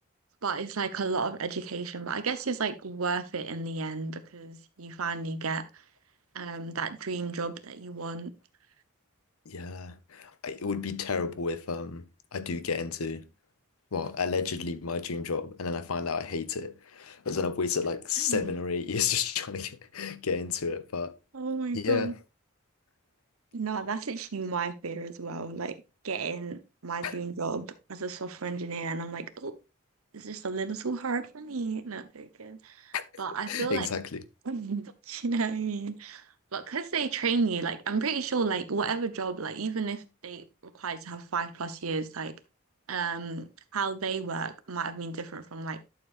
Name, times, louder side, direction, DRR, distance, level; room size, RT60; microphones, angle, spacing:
voice 1, 0.4-5.6 6.3-8.3 18.3-18.5 21.3-22.1 23.5-25.8 26.0-29.5 30.1-33.9 34.5-36.2 36.5-40.4 40.7-42.3 42.9-45.8, right 4 dB, 80° right, 0.9 m, -32 dB
voice 2, 9.5-13.3 13.9-21.1 21.7-22.1 27.0-27.2 32.9-33.0 33.5-34.2, left 5 dB, 85° left, 0.8 m, -31 dB
11.5 x 6.8 x 2.6 m
head